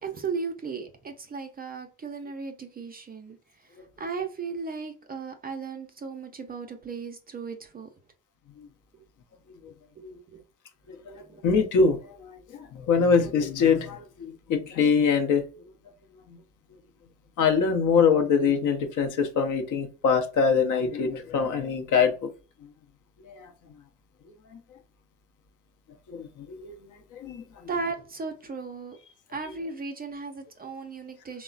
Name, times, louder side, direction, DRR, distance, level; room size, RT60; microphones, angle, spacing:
voice 1, 0.0-3.4 3.6-3.7 4.0-7.9 10.0-10.1 10.3-10.4 11.2-11.4 27.7-29.0 29.3-31.4, right 4 dB, 25° right, 0.4 m, -36 dB
voice 2, 11.4-15.4 17.4-22.1 23.2-23.5 26.1-26.7 27.1-27.4, left 5 dB, 55° left, 0.6 m, -24 dB
3.0 x 2.0 x 2.4 m
supercardioid pair, 80°, 37 cm